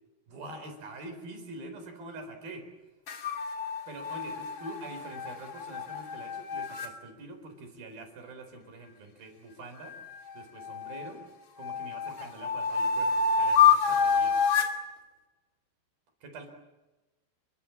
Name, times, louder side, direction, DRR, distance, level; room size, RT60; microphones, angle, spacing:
voice 1, 0.3-2.6 3.9-10.0 10.3-11.2 11.6-14.4 16.2-16.5, right 2 dB, 50° right, 6 dB, 5.9 m, -45 dB
sound 1, 3.1-6.9 9.8-11.1 11.6-14.8, left 6 dB, 40° left, 2.5 m, -27 dB
29.5 x 23.5 x 7.4 m, 1.1 s
omnidirectional pair, 5.9 m